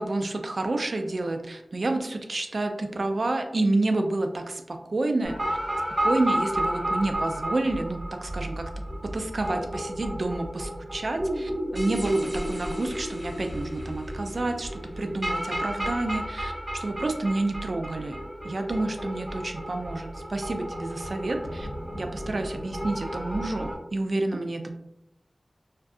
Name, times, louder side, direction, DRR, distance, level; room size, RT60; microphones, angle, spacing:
voice 1, 0.0-5.6 6.0-8.7 9.0-18.2 18.4-21.7 21.9-24.7, right 2 dB, 65° right, 5 dB, 0.3 m, -29 dB
sound 1, 5.2-23.7, right 1 dB, 25° right, 1.3 m, -32 dB
2.6 x 2.3 x 2.3 m, 0.85 s
wide cardioid pair, 60°, 0 cm